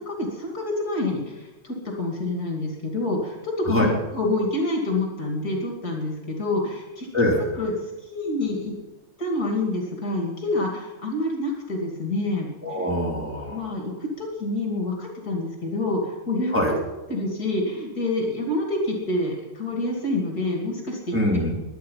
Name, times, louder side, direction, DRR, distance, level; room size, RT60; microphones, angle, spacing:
voice 1, 0.0-7.1 7.6-8.8 9.2-12.9 13.2-16.8 17.1-21.2, left 2 dB, 45° left, 1 dB, 3.2 m, -27 dB
voice 2, 7.1-7.4 12.6-13.6 16.5-16.7 21.1-21.6, left 1 dB, 5° right, -2 dB, 3.2 m, -23 dB
22.5 x 9.5 x 5.7 m, 1.1 s
omnidirectional pair, 2.3 m